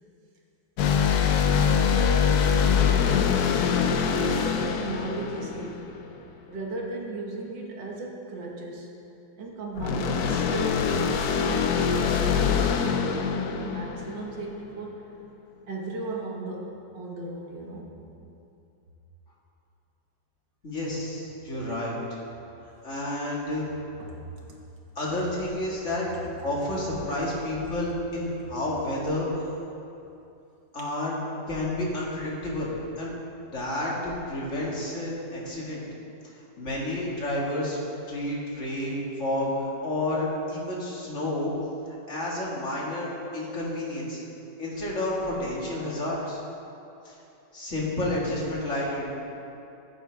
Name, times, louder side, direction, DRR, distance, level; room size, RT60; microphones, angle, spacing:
sound 1, 0.8-6.3 9.8-14.5, left 7 dB, 65° left, 1.1 m, -24 dB
voice 1, 1.2-6.1 6.5-8.9 9.4-15.0 15.7-17.9 21.3-21.5 24.0-24.2 24.5-24.6 30.8-30.9, right 2 dB, 80° right, -2 dB, 2.2 m, -36 dB
voice 2, 20.6-22.2 22.8-23.7 25.0-26.1 26.4-29.3 30.7-31.1 31.5-32.7 33.0-33.1 33.5-35.8 36.3-37.8 38.1-41.5 42.1-44.2 44.6-46.4 47.0-47.2 47.5-49.1, left 1 dB, 40° left, -5 dB, 2.3 m, -30 dB
14.5 x 9.5 x 3.4 m, 2.7 s
omnidirectional pair, 1.9 m